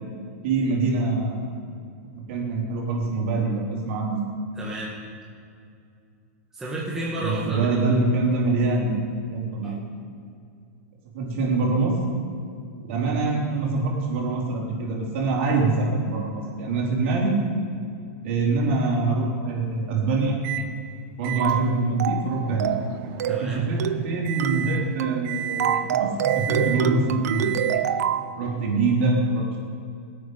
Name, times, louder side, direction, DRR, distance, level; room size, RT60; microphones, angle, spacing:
voice 1, 0.4-1.6 2.3-4.2 7.2-8.9 9.3-9.8 11.1-12.0 12.8-17.4 18.2-20.4 21.2-22.7 23.3-27.5 28.4-29.6, right 3 dB, 50° right, -2 dB, 3.9 m, -24 dB
voice 2, 4.5-5.0 6.5-7.8 9.6-9.8 23.3-23.6, right 1 dB, 5° right, -6 dB, 1.6 m, -31 dB
Microwave oven, 20.4-20.7 21.2-28.1, right 10 dB, 35° right, 0.9 m, -34 dB
sound 1, 21.4-21.7 22.0-22.3 22.6-22.9 23.2-23.5 23.8-24.1 24.4-24.7 25.0-25.2 25.6-28.2, right 10 dB, 80° right, 0.8 m, -25 dB
24.5 x 8.5 x 5.1 m, 2.4 s
supercardioid pair, 170°, 8 cm